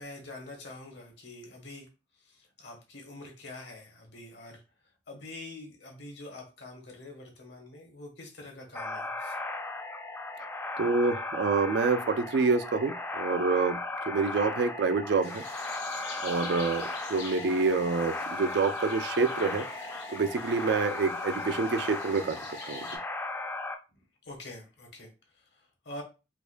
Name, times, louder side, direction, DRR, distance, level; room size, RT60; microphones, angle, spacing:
voice 1, 0.0-1.9 2.2-4.6 5.1-9.4 24.2-26.0, left 2 dB, 70° left, 1.1 m, -45 dB
sound 1, 8.7-23.8, left 2 dB, 10° left, 0.3 m, -36 dB
voice 2, 10.8-13.8 14.1-15.4 16.2-19.7 20.1-22.4 22.7-23.0, right 4 dB, 65° right, 0.4 m, -27 dB
sound 2, 15.2-23.0, left 3 dB, 85° left, 1.4 m, -45 dB
4.6 x 2.1 x 2.5 m
head